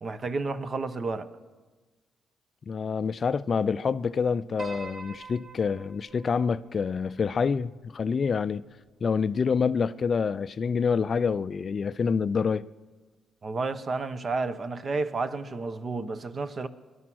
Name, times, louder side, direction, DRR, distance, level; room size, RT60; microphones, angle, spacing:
voice 1, 0.0-1.3 13.4-16.7, right 3 dB, 40° right, 0.9 m, -31 dB
voice 2, 2.7-8.6 9.0-12.6, left 5 dB, 45° left, 0.4 m, -27 dB
Piano, 4.6-9.0, right 3 dB, 55° right, 2.3 m, -46 dB
19.5 x 11.5 x 6.3 m
cardioid pair, 90°, 0 cm